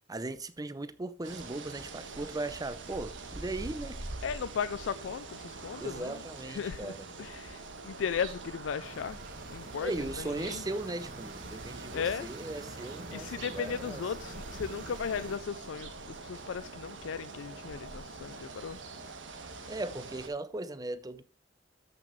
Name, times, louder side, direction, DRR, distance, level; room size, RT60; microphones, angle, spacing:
voice 1, 0.1-4.0 5.8-7.1 9.8-14.0 19.7-21.2, right 2 dB, 20° right, 0.7 m, -38 dB
sound 1, 1.2-20.3, right 3 dB, 85° right, 1.4 m, -44 dB
voice 2, 4.2-9.2 9.5-10.6 11.9-12.3 12.7-18.8, left 6 dB, 85° left, 0.4 m, -37 dB
sound 2, 8.8-15.4, right 2 dB, 50° right, 1.6 m, -47 dB
13.5 x 6.0 x 3.1 m
head